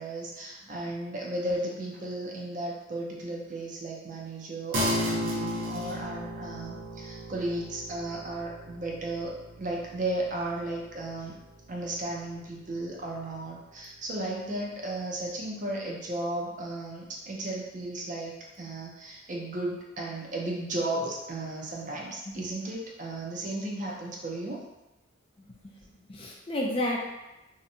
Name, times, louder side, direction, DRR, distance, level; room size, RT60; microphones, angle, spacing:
voice 1, 0.0-11.3 11.7-24.6, right 2 dB, 40° right, -2 dB, 0.5 m, -35 dB
sound 1, 4.7-14.5, equal, 85° right, 0.6 m, -36 dB
voice 2, 26.1-27.1, left 1 dB, 25° left, -2 dB, 0.3 m, -31 dB
2.7 x 2.1 x 2.6 m, 0.98 s
head